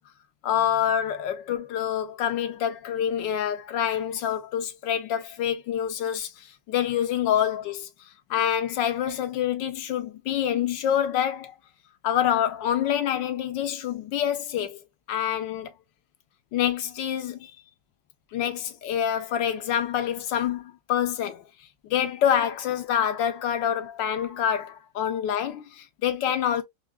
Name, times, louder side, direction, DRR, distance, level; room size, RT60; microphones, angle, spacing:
voice 1, 0.4-7.9 8.3-11.6 12.0-14.8 15.1-15.7 16.5-17.5 18.3-21.4 21.9-26.6, left 9 dB, 80° left, 1.3 m, -26 dB
4.8 x 2.4 x 2.3 m
omnidirectional pair, 2.0 m